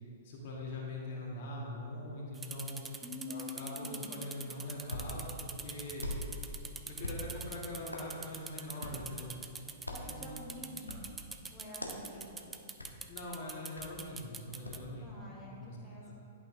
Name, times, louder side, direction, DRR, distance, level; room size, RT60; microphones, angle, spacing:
voice 1, 0.2-2.8 3.3-6.1 6.9-9.3 10.0-10.4 13.1-15.8 16.0-16.1, left 1 dB, 45° left, -3 dB, 1.7 m, -43 dB
sound 1, 2.3-14.8, right 5 dB, 15° right, 0.4 m, -45 dB
voice 2, 3.0-4.2 9.9-11.1 11.5-12.6 15.0-16.1, left 3 dB, 10° left, -6 dB, 1.2 m, -47 dB
Hands, 4.5-14.9, left 1 dB, 85° left, 0.8 m, -45 dB
11.0 x 5.6 x 2.7 m, 2.6 s
figure-of-eight pair, 110°, 0 cm